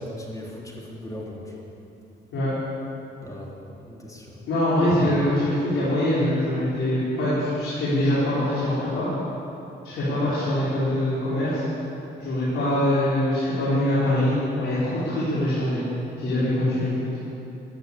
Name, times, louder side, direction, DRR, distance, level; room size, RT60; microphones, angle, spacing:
voice 1, 0.0-1.5 3.2-3.5 3.9-4.4, left 1 dB, 15° left, -3 dB, 3.6 m, -38 dB
voice 2, 4.5-9.1 9.8-11.6 12.2-15.8 16.2-16.9, left 1 dB, 80° left, -11 dB, 4.7 m, -23 dB
15.5 x 9.5 x 8.4 m, 2.8 s
cardioid pair, 90°, 20 cm